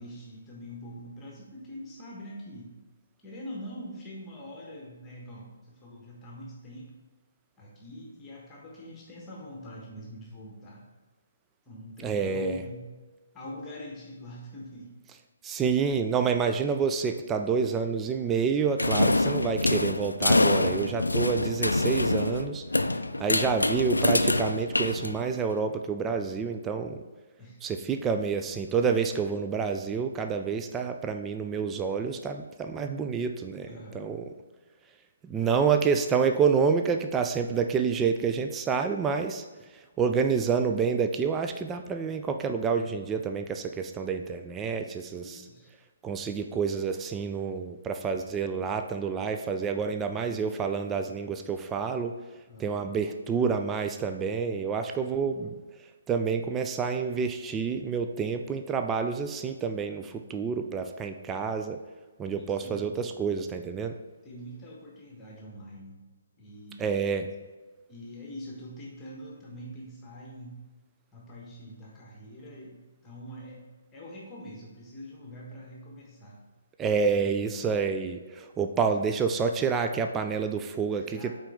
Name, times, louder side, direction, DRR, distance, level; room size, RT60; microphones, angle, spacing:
voice 1, 0.0-2.7 3.2-6.9 7.6-10.8 11.7-12.8 13.3-14.9 22.8-23.5 27.4-27.6 27.9-28.0 33.6-34.2 35.4-35.5 38.0-38.3 45.2-45.7 52.5-52.9 62.4-62.8 64.2-66.0 66.4-66.9 67.9-70.6 71.1-73.7 73.9-76.4 77.1-77.5 80.9-81.4, equal, 15° left, -3 dB, 1.3 m, -44 dB
voice 2, 12.0-12.6 15.4-22.6 22.9-27.0 27.6-33.7 33.9-34.2 35.2-39.4 40.0-45.5 46.0-52.1 52.6-55.5 56.1-61.8 62.2-64.0 66.8-67.3 76.8-81.4, right 6 dB, 15° right, 6 dB, 0.3 m, -28 dB
sound 1, 18.8-25.5, left 2 dB, 80° left, 0.3 m, -25 dB
8.7 x 3.9 x 3.6 m, 1.3 s
figure-of-eight pair, 135°, 0 cm